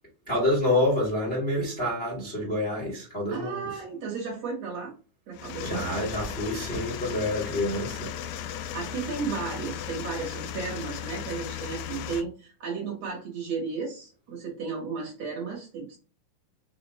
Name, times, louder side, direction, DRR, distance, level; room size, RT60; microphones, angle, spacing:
voice 1, 0.3-3.7 5.6-8.1, left 1 dB, 45° left, 0.7 m, -27 dB
voice 2, 3.3-4.9 5.3-6.1 8.5-16.0, right 5 dB, 55° right, 2.1 m, -34 dB
sound 1, 5.3-12.2, left 9 dB, 80° left, 1.9 m, -36 dB
5.4 x 2.4 x 3.1 m
omnidirectional pair, 4.1 m